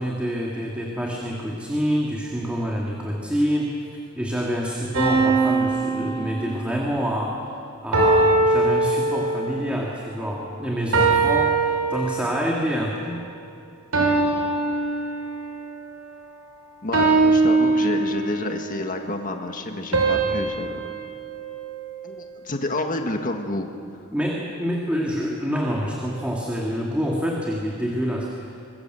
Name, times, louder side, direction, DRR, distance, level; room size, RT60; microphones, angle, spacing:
voice 1, 0.0-3.7 4.2-13.2 24.1-28.6, equal, 5° right, -2 dB, 2.2 m, -27 dB
sound 1, 4.9-6.9 7.9-9.6 10.9-12.5 13.9-15.6 16.9-18.5 19.9-22.3, right 3 dB, 80° right, 5.4 m, -22 dB
voice 2, 16.8-20.9 22.0-23.7, left 2 dB, 40° left, 4 dB, 1.7 m, -29 dB
25.0 x 20.5 x 7.9 m, 2.4 s
head